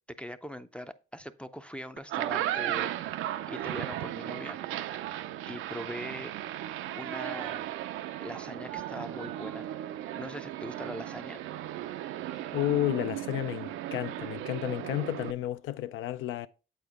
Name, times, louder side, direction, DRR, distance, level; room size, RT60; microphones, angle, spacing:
voice 1, 0.2-2.9 3.5-4.6 5.5-6.4 7.0-7.7 8.2-11.4, equal, 5° left, 0.4 m, -41 dB
sound 1, 2.0-15.3, right 13 dB, 90° right, 0.4 m, -36 dB
voice 2, 12.5-16.5, left 14 dB, 80° left, 0.5 m, -31 dB
8.2 x 4.2 x 3.5 m
cardioid pair, 90°, 20 cm